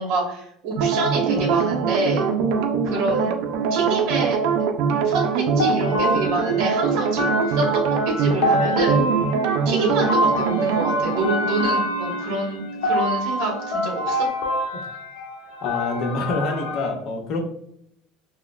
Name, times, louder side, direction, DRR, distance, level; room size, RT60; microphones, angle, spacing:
voice 1, 0.0-2.3 2.8-3.3 3.7-4.4 5.0-9.0 9.6-14.3, right 2 dB, 55° right, -1 dB, 1.1 m, -27 dB
sound 1, 0.8-13.9 14.1-14.3, right 6 dB, 75° right, 0.4 m, -23 dB
sound 2, 5.6-16.9, left 1 dB, 90° left, 1.0 m, -26 dB
voice 2, 15.6-17.4, left 3 dB, 50° left, 3 dB, 0.8 m, -26 dB
6.1 x 2.1 x 2.3 m, 0.74 s
cardioid pair, 150°, 0 cm